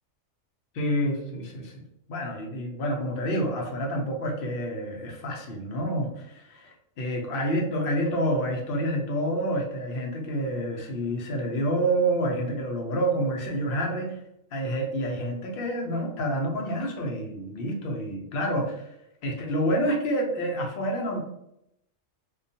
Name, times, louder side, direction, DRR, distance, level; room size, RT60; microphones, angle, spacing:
voice 1, 0.7-1.7 2.1-14.2 14.5-18.8 19.2-21.2, right 1 dB, 60° left, 1 dB, 0.6 m, -28 dB
2.3 x 2.2 x 2.6 m, 0.78 s
omnidirectional pair, 1.4 m